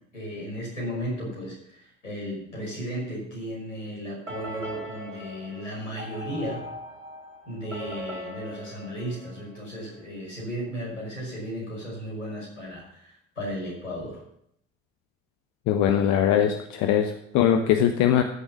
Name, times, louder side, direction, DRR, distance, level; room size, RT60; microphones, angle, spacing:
voice 1, 0.1-6.6 7.5-14.2, equal, 80° left, -3 dB, 5.9 m, -35 dB
sound 1, 4.3-10.0, equal, 85° right, 2.1 m, -40 dB
voice 2, 15.7-18.2, left 9 dB, 50° left, 7 dB, 1.1 m, -21 dB
14.5 x 7.3 x 6.2 m, 0.72 s
figure-of-eight pair, 60°, 37 cm